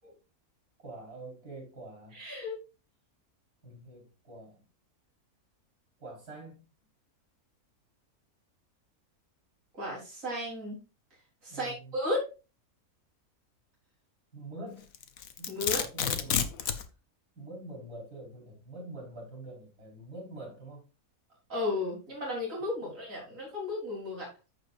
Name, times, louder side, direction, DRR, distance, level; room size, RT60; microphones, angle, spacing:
voice 1, 0.8-2.2 3.6-4.6 6.0-6.6 11.5-11.9 14.3-14.9 15.4-16.5 17.4-20.8 22.8-22.9, right 2 dB, 85° right, 5.1 m, -45 dB
voice 2, 2.1-2.6 9.7-10.8 11.4-12.3 15.5-15.8 21.5-24.3, left 2 dB, 60° right, 4.2 m, -34 dB
Domestic sounds home sounds, 14.9-16.9, left 8 dB, 70° left, 1.3 m, -30 dB
14.5 x 5.4 x 2.5 m
omnidirectional pair, 1.6 m